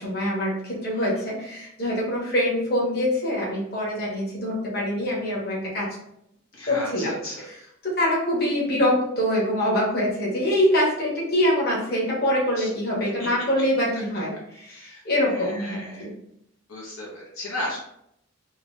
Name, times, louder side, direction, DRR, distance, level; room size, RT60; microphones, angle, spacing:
voice 1, 0.0-5.9 6.7-7.1 7.8-16.1, left 1 dB, 45° left, -5 dB, 1.2 m, -24 dB
voice 2, 6.5-7.5 12.6-12.7 13.2-13.3 14.7-15.0 15.3-16.1 16.7-17.8, left 1 dB, 75° left, -4 dB, 0.9 m, -34 dB
2.9 x 2.8 x 3.2 m, 0.76 s
head